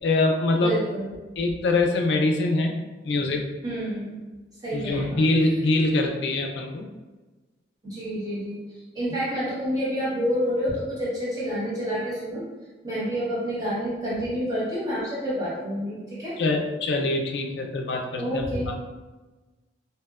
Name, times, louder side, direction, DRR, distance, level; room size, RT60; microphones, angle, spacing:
voice 1, 0.0-0.8 1.4-3.5 4.7-6.9 16.4-18.5, left 2 dB, 70° left, 2 dB, 0.3 m, -24 dB
voice 2, 0.5-1.1 3.6-4.2 4.6-5.2 7.8-12.5 12.8-16.4 18.2-18.7, equal, 20° right, -8 dB, 0.8 m, -28 dB
2.8 x 2.1 x 2.3 m, 1.2 s
head